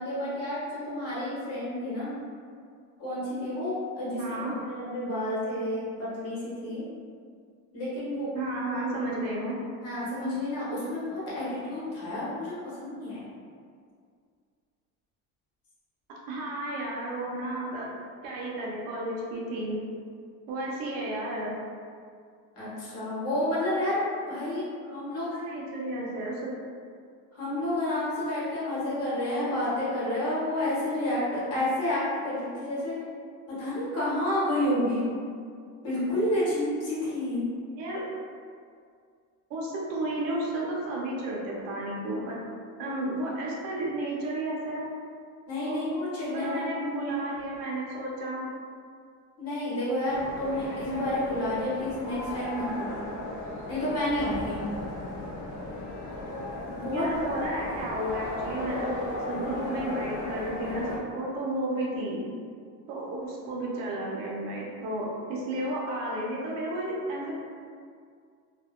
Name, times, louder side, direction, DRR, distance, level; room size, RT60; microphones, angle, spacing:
voice 1, 0.0-2.1 3.0-6.9 7.7-8.3 9.8-13.3 22.5-24.0 24.3-25.3 27.3-33.0 33.6-35.1 35.8-37.4 45.5-46.8 49.4-53.2 53.7-54.6 56.6-57.1, left 1 dB, 45° left, -9 dB, 1.0 m, -30 dB
voice 2, 4.2-4.5 8.3-9.5 16.3-17.9 18.2-19.8 20.5-21.5 25.3-26.5 37.8-38.0 39.5-42.4 42.8-44.8 45.7-45.8 46.3-48.4 56.8-58.9 59.3-62.2 62.9-67.4, right 1 dB, 80° right, -4 dB, 0.7 m, -32 dB
sound 1, 50.1-61.0, left 1 dB, 60° left, 0.5 m, -36 dB
2.6 x 2.1 x 2.3 m, 2.2 s
cardioid pair, 165°, 34 cm